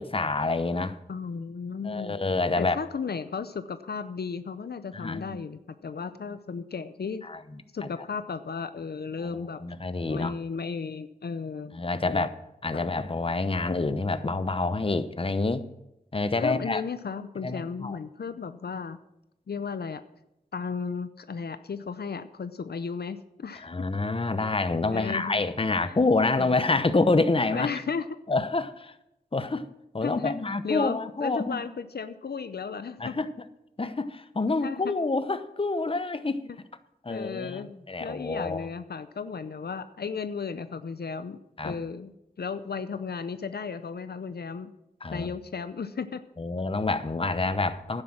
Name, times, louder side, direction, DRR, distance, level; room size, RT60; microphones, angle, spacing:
voice 1, 0.0-1.0 1.8-2.8 4.9-5.4 7.2-7.4 9.2-10.3 11.7-12.3 12.6-15.6 16.1-16.8 17.4-18.0 23.6-27.7 28.3-28.9 29.3-29.6 29.9-31.6 33.0-33.3 33.8-36.4 37.0-38.7 41.6-41.8 45.0-45.3 46.4-48.0, left 3 dB, 35° left, 11 dB, 0.8 m, -27 dB
voice 2, 1.1-2.2 2.6-7.2 7.7-9.6 10.1-11.7 12.0-12.3 12.7-12.8 16.4-19.0 19.5-20.0 20.5-23.7 24.9-25.4 25.9-26.0 26.4-26.5 27.5-28.0 30.0-30.4 30.6-33.2 34.6-34.9 36.3-36.4 37.1-37.7 38.0-41.4 41.6-44.7 45.1-46.2, left 5 dB, 85° left, 11 dB, 0.6 m, -34 dB
11.5 x 9.8 x 6.0 m, 0.86 s
wide cardioid pair, 65°, 16 cm